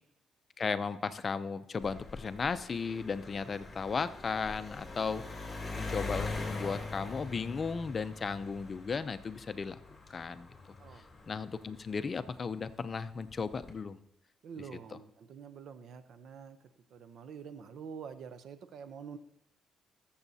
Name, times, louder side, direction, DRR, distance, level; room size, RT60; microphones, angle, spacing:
voice 1, 0.6-5.2 5.8-9.8 10.1-10.5 11.3-14.0, left 5 dB, 40° left, 13 dB, 0.5 m, -35 dB
sound 1, 1.8-12.5 13.3-13.7, left 3 dB, 20° left, 2.8 m, -43 dB
voice 2, 14.4-16.6 16.9-19.2, right 6 dB, 70° right, 12 dB, 0.7 m, -46 dB
20.5 x 7.1 x 2.8 m, 0.84 s
cardioid pair, 90°, 0 cm